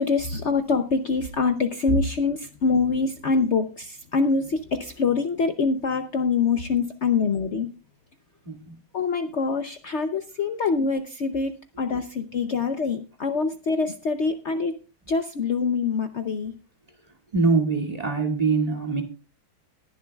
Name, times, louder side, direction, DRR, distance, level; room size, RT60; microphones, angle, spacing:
voice 1, 0.0-7.7 8.9-11.5 11.8-14.7 15.1-16.5, left 4 dB, 75° left, 8 dB, 0.6 m, -25 dB
voice 2, 8.4-8.8 11.9-12.0 17.0-19.0, right 4 dB, 20° right, 2 dB, 2.1 m, -24 dB
20.0 x 11.0 x 2.3 m, 0.34 s
omnidirectional pair, 2.2 m